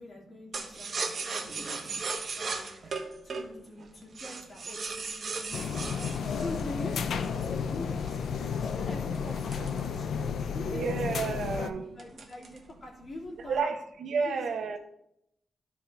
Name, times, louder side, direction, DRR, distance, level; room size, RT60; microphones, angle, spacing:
voice 1, 0.0-2.0 2.3-10.1 10.3-13.7 14.2-14.4, left 2 dB, 40° left, 2.8 m, -44 dB
sound 1, 0.5-7.4 8.0-10.4 10.8-10.9 11.2-11.5 12.0-12.7 13.0-13.6, right 4 dB, 45° right, 1.2 m, -37 dB
sound 2, 5.5-11.7, left 6 dB, 85° left, 0.6 m, -32 dB
voice 2, 10.7-11.9 13.5-14.8, right 5 dB, 85° right, 1.0 m, -31 dB
14.0 x 5.1 x 3.4 m
wide cardioid pair, 175°, 0 cm